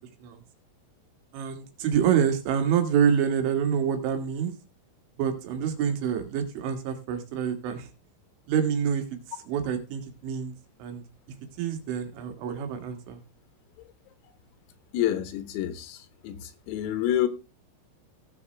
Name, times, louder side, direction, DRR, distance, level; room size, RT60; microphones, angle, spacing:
voice 1, 1.3-4.5 5.2-7.9 8.5-11.0 11.6-13.2, right 8 dB, 70° right, 4.0 m, -27 dB
voice 2, 14.9-17.3, left 11 dB, 85° left, 3.9 m, -28 dB
17.5 x 7.2 x 3.3 m
omnidirectional pair, 5.9 m